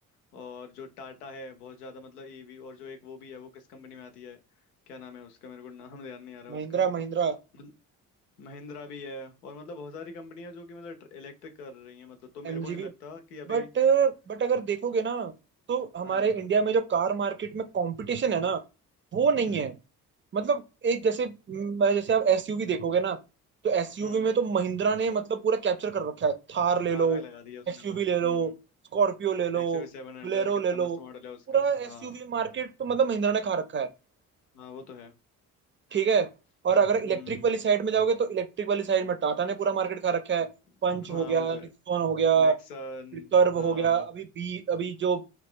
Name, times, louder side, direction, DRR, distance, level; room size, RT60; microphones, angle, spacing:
voice 1, 0.3-4.4 4.9-6.9 7.5-7.7 8.4-13.7 16.0-16.3 19.4-19.7 24.0-24.3 26.9-28.5 29.5-32.1 34.5-35.1 36.7-37.5 40.9-41.7 42.4-44.1, left 4 dB, 85° left, 0.6 m, -44 dB
voice 2, 6.5-7.4 12.4-12.9 13.5-15.3 15.7-18.6 19.1-19.7 20.3-23.2 23.6-27.2 27.7-28.5 28.9-29.8 30.2-31.0 31.5-33.9 35.9-36.3 36.6-40.5 40.8-41.6 41.9-42.5 43.3-45.2, right 6 dB, 25° right, 0.6 m, -26 dB
2.7 x 2.3 x 3.6 m
figure-of-eight pair, 40°, 44 cm